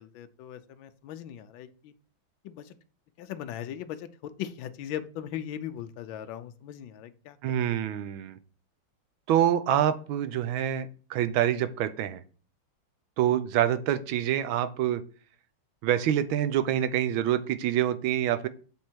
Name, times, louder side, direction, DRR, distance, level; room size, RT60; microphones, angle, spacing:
voice 1, 0.0-1.9 2.4-2.8 3.2-7.4, left 10 dB, 80° left, 10 dB, 1.4 m, -39 dB
voice 2, 7.4-8.4 9.3-12.2 13.2-15.0 15.8-18.5, right 11 dB, 85° right, 12 dB, 1.5 m, -26 dB
7.4 x 3.6 x 4.4 m, 0.39 s
omnidirectional pair, 2.2 m